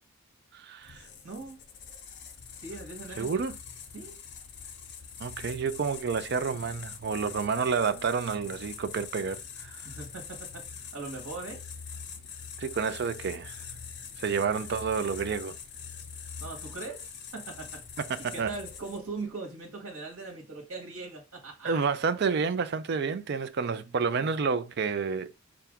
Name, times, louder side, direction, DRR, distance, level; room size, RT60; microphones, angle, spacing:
voice 1, 0.5-1.1 3.2-3.5 5.2-9.8 12.6-13.6 14.2-15.6 18.0-18.5 21.6-25.3, right 5 dB, 50° right, 0.4 m, -29 dB
sound 1, 0.8-19.2, left 6 dB, 50° left, 0.6 m, -44 dB
voice 2, 1.2-1.6 2.6-3.4 3.9-4.2 9.8-10.6 10.9-11.6 16.4-17.8 18.3-21.8, right 3 dB, 85° right, 1.3 m, -40 dB
5.7 x 2.5 x 3.5 m
head